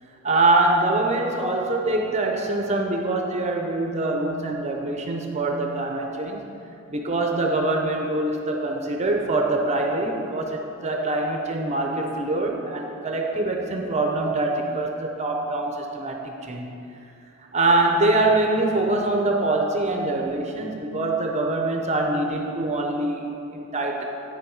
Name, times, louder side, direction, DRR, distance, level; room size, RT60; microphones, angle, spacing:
voice 1, 0.2-6.5 6.9-16.7 17.5-24.0, right 2 dB, 35° right, 2 dB, 0.7 m, -24 dB
9.3 x 6.6 x 4.7 m, 2.7 s
head